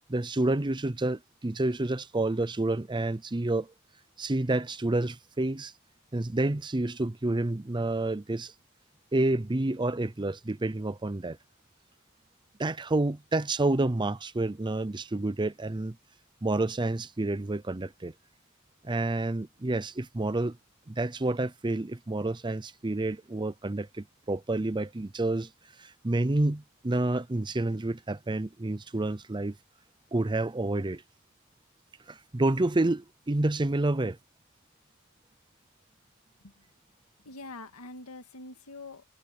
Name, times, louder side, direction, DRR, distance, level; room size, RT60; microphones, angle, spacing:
voice 1, 0.1-3.7 4.2-5.7 6.1-8.5 9.1-11.4 12.6-16.0 16.4-18.1 18.8-20.6 20.9-25.5 25.8-29.6 30.1-31.0 32.1-34.2, right 2 dB, 20° right, 0.6 m, -29 dB
voice 2, 37.2-39.0, left 2 dB, 90° left, 2.1 m, -44 dB
head